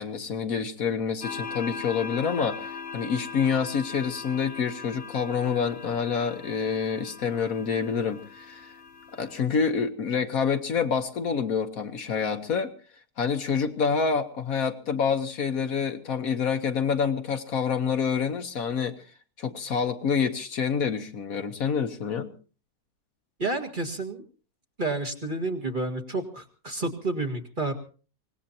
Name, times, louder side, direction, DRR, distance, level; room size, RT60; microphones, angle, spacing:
voice 1, 0.0-8.7 9.1-12.7 13.2-18.9 19.4-22.3, left 6 dB, 65° left, 8 dB, 1.4 m, -27 dB
sound 1, 1.2-9.4, left 5 dB, 45° left, 1.0 m, -40 dB
voice 2, 23.4-24.2 24.8-27.7, right 2 dB, 30° right, 5 dB, 2.0 m, -30 dB
25.0 x 18.5 x 2.8 m, 0.38 s
omnidirectional pair, 1.7 m